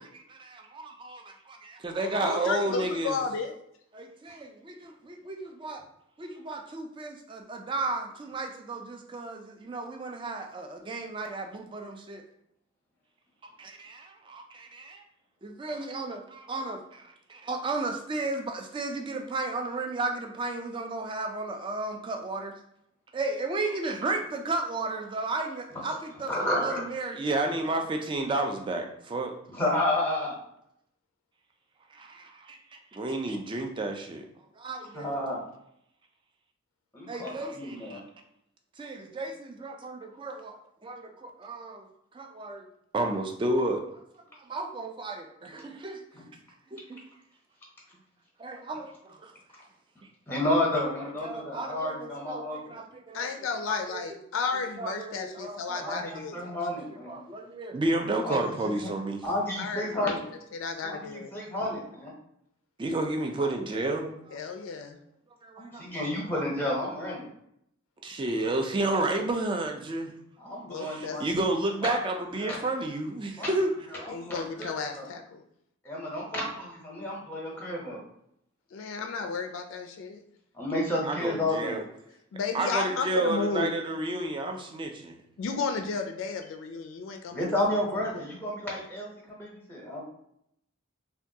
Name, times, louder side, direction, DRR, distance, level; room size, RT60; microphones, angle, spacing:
voice 1, 0.3-3.2 3.9-5.8 6.2-12.2 13.6-15.0 15.4-22.5 23.1-29.3 31.9-34.2 34.6-35.2 37.1-38.0 38.8-41.9 42.1-42.7 42.9-43.8 44.4-46.0 46.7-47.0 48.4-49.3 51.2-53.3 53.7-54.1 54.8-56.2 56.5-56.6 57.1-59.2 62.8-64.4 65.4-65.8 66.3-66.4 68.0-70.1 70.8-73.7 74.0-74.1 81.0-81.8 82.5-85.2, right 2 dB, 25° right, 3 dB, 0.3 m, -32 dB
voice 2, 2.2-3.5 53.1-56.6 59.6-60.1 60.5-61.3 64.3-65.0 70.6-71.5 74.1-75.4 78.7-80.2 82.3-83.7 85.4-87.5, left 5 dB, 75° left, 5 dB, 0.3 m, -33 dB
voice 3, 26.3-26.8 29.5-30.4 34.9-35.4 36.9-38.0 46.1-46.2 50.3-52.8 55.8-57.2 58.2-58.9 59.2-60.2 60.8-62.1 65.6-67.3 70.4-71.2 71.8-72.0 72.4-72.6 73.4-73.5 74.0-75.1 75.8-78.0 80.5-81.8 87.3-90.0, left 1 dB, 10° left, -3 dB, 0.7 m, -31 dB
3.4 x 2.2 x 2.7 m, 0.75 s
head